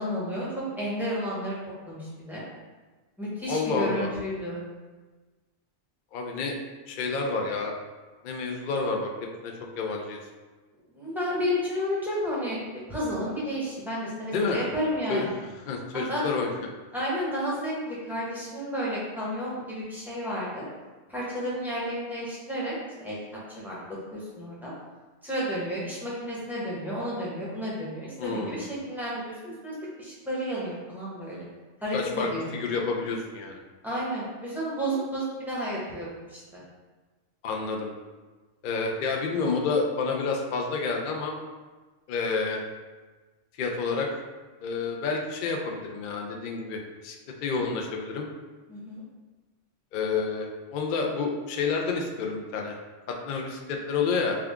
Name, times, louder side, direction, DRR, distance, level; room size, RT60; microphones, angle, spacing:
voice 1, 0.0-1.5 1.9-2.4 3.2-4.6 10.9-15.3 16.1-16.3 16.9-20.7 21.1-22.7 23.0-23.2 23.6-24.7 25.2-31.5 31.8-32.5 33.8-36.6 48.7-49.0, equal, ahead, -8 dB, 0.8 m, -32 dB
voice 2, 3.5-4.1 6.1-6.5 6.9-7.8 8.2-9.1 9.4-10.2 14.3-14.6 15.1-15.2 15.7-16.5 28.2-28.6 31.9-33.6 37.4-37.9 38.6-41.3 42.1-42.6 43.6-44.1 44.6-47.2 47.4-48.2 49.9-52.7 53.3-54.4, left 4 dB, 60° left, 1 dB, 0.5 m, -29 dB
3.7 x 2.3 x 3.5 m, 1.3 s
omnidirectional pair, 1.2 m